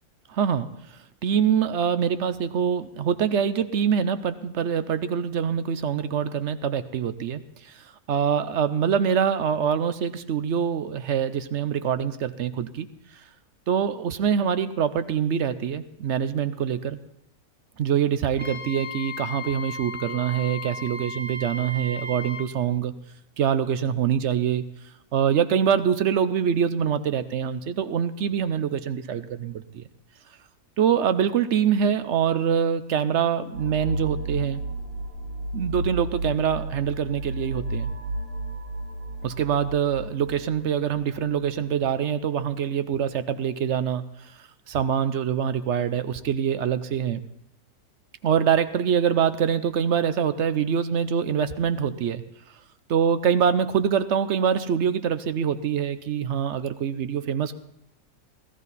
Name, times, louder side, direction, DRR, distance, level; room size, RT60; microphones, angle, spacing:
voice 1, 0.3-0.7 1.2-7.8 8.1-12.9 13.7-17.0 17.8-22.9 23.4-24.6 25.1-29.8 30.8-34.6 35.5-37.9 39.2-44.0 44.7-47.2 48.2-52.2 52.9-57.5, right 8 dB, 60° right, 12 dB, 0.8 m, -24 dB
Wind instrument woodwind instrument, 18.4-22.5, left 3 dB, 10° right, 0.9 m, -35 dB
sound 1, 33.5-42.2, right 2 dB, 80° right, 2.4 m, -33 dB
17.0 x 13.5 x 4.1 m, 0.79 s
omnidirectional pair, 1.6 m